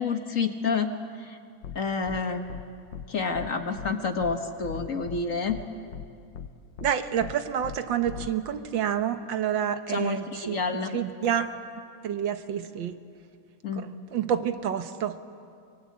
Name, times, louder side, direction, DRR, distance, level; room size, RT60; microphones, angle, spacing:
voice 1, 0.0-1.4 1.7-2.4 3.1-5.6 9.9-11.0 13.6-13.9, left 4 dB, 45° left, 6 dB, 1.4 m, -29 dB
sound 1, 1.6-1.8 2.1-2.2 2.5-2.6 2.9-3.1 3.3-3.5 3.8-3.9 4.2-4.3 4.6-5.2 5.5-5.6 5.9-6.0 6.3-6.5 6.8-6.9 7.2-7.3 7.6-7.8 8.1-8.3, left 8 dB, 75° left, 1.7 m, -38 dB
voice 2, 6.8-10.6 10.9-11.5 12.0-12.9 13.8-15.2, right 9 dB, 70° right, 10 dB, 1.7 m, -28 dB
25.0 x 22.5 x 8.5 m, 2.3 s
omnidirectional pair, 2.1 m